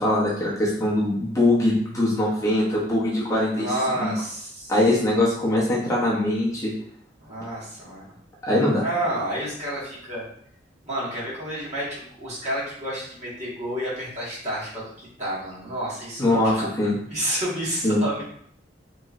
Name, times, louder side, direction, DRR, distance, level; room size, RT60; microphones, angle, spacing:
voice 1, 0.0-3.7 4.0-4.1 4.7-6.7 8.4-8.8 16.2-17.0 17.8-18.0, left 1 dB, 20° left, -7 dB, 0.7 m, -22 dB
voice 2, 3.5-4.7 7.2-8.1 8.8-10.2 10.8-16.7 17.1-18.2, right 1 dB, 40° right, -8 dB, 1.4 m, -30 dB
3.0 x 2.9 x 2.4 m, 0.66 s
head